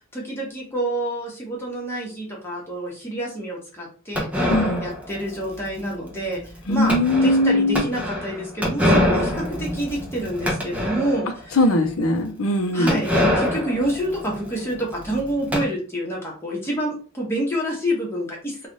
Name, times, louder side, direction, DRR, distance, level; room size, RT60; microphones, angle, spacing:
voice 1, 0.1-11.6 12.7-18.7, right 1 dB, 10° left, -3 dB, 1.1 m, -28 dB
sound 1, 4.2-11.4 11.8-11.9 12.1-12.2 12.9-15.6, left 1 dB, 5° right, 0.7 m, -25 dB
voice 2, 4.5-4.8 6.7-7.9 11.6-13.0, left 1 dB, 80° left, 6 dB, 0.7 m, -20 dB
3.2 x 2.4 x 4.0 m, 0.39 s
head